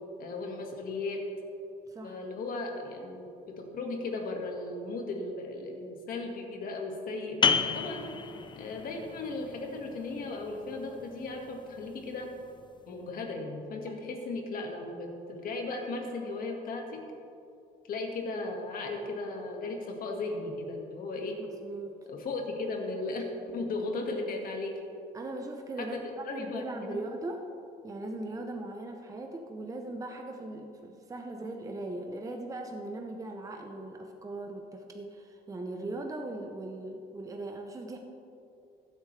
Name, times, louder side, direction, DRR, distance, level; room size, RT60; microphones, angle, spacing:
voice 1, 0.2-1.2 2.0-8.1 8.6-12.3 12.9-17.0 17.9-21.4 22.1-23.3 23.5-24.7 25.8-27.0, left 3 dB, 55° left, 2 dB, 1.8 m, -36 dB
voice 2, 1.9-2.2 21.4-21.9 25.1-27.4 27.8-38.0, right 2 dB, 20° right, 3 dB, 0.7 m, -39 dB
sound 1, 7.4-12.8, left 6 dB, 30° left, 0.6 m, -33 dB
15.0 x 8.6 x 3.3 m, 2.7 s
cardioid pair, 110°, 17 cm